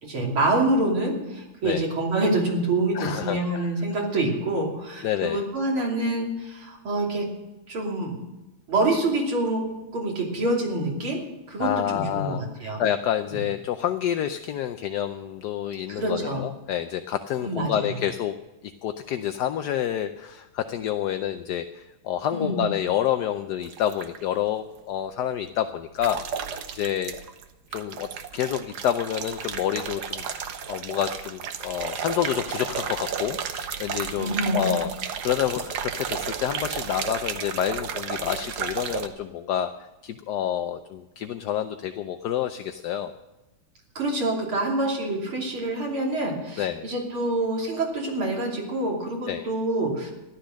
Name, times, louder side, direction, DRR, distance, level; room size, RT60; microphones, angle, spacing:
voice 1, 0.0-7.3 7.7-8.1 8.7-9.6 9.9-11.2 11.5-12.8 16.0-16.4 17.4-17.7 22.3-22.6 34.2-34.7 44.0-50.1, right 2 dB, 85° right, -1 dB, 3.9 m, -26 dB
voice 2, 2.9-3.7 5.0-5.4 11.6-12.4 12.8-18.3 18.8-27.2 27.7-30.2 30.7-43.1 46.6-46.9 49.3-49.5, left 10 dB, 70° left, 8 dB, 1.0 m, -28 dB
sound 1, 23.6-24.2 26.0-27.4 27.7-39.1, right 7 dB, 60° right, 1.3 m, -33 dB
14.0 x 12.0 x 6.4 m, 1.0 s
omnidirectional pair, 2.3 m